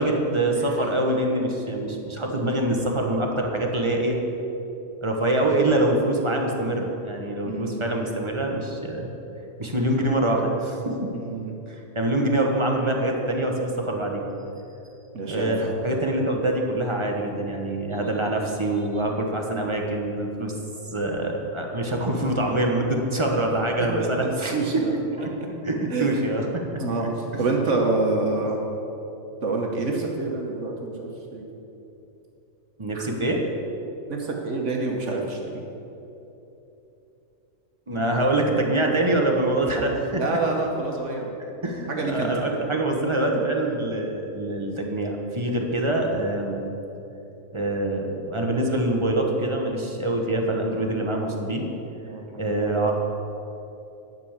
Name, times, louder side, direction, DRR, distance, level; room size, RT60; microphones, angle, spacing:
voice 1, 0.0-4.2 5.0-9.1 9.6-11.1 11.7-14.2 15.3-20.5 20.9-25.3 25.6-26.8 32.8-33.4 37.9-40.2 41.6-46.7 47.5-51.6 52.4-52.9, right 1 dB, 25° right, 1 dB, 0.9 m, -25 dB
voice 2, 7.4-7.8 11.1-11.5 15.1-15.7 23.2-23.4 24.0-24.9 25.9-26.1 26.8-27.1 27.4-28.6 29.4-31.4 32.9-33.1 34.1-35.6 40.1-41.4 41.9-42.3 52.0-52.7, right 3 dB, 60° right, 0 dB, 1.4 m, -27 dB
10.5 x 5.4 x 7.2 m, 2.9 s
omnidirectional pair, 1.4 m